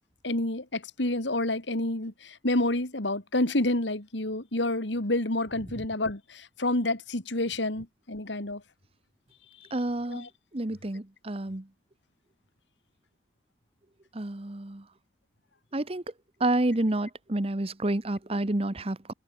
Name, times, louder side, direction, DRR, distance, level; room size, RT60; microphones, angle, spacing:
voice 1, 0.2-8.6 10.1-10.3, left 2 dB, 85° left, 3.1 m, -29 dB
voice 2, 9.7-10.3 10.5-11.6 14.1-14.8 15.7-16.0 16.4-19.1, right 1 dB, 35° right, 1.1 m, -29 dB
open air
head